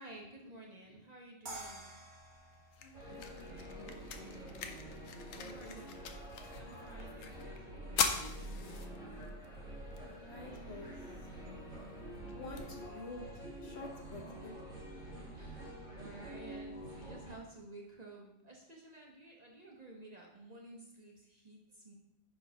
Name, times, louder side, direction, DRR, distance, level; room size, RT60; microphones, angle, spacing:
voice 1, 0.0-2.2 5.5-6.3 6.6-9.0 14.4-14.5 15.3-21.9, right 2 dB, 35° right, -1 dB, 0.9 m, -53 dB
sound 1, 1.5-4.5, right 2 dB, 55° right, 1.6 m, -50 dB
sound 2, 2.2-14.2, left 6 dB, 90° left, 1.0 m, -43 dB
voice 2, 2.8-4.8 5.3-5.8 10.0-11.0 11.4-11.5 12.3-14.5, left 2 dB, 55° left, 2 dB, 1.1 m, -50 dB
sound 3, 2.9-17.4, right 1 dB, 80° right, 2.4 m, -47 dB
5.4 x 4.5 x 5.5 m, 0.86 s
omnidirectional pair, 1.3 m